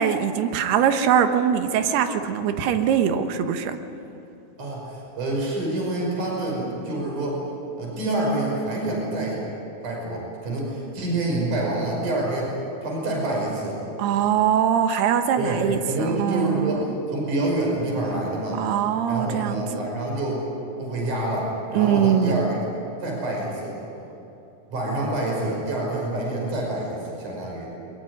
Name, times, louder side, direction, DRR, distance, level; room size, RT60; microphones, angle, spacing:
voice 1, 0.0-3.8 14.0-16.9 18.6-19.6 21.7-22.5, right 8 dB, 90° right, 8 dB, 3.2 m, -22 dB
voice 2, 4.6-7.4 7.8-9.4 9.8-12.5 12.8-13.8 15.4-18.6 19.0-20.4 20.8-22.6 23.0-23.8 24.7-27.7, right 1 dB, 50° right, -2 dB, 7.0 m, -27 dB
22.0 x 21.5 x 9.8 m, 2.9 s
omnidirectional pair, 4.5 m